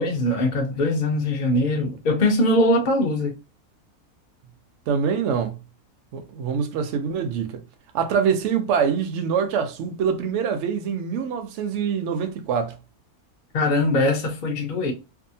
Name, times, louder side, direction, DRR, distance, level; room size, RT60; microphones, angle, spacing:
voice 1, 0.0-3.3 13.5-14.9, left 1 dB, 60° left, 0.5 m, -21 dB
voice 2, 4.9-5.6 6.1-7.6 7.9-12.7, right 7 dB, 65° right, 0.7 m, -24 dB
2.7 x 2.3 x 2.6 m
omnidirectional pair, 1.6 m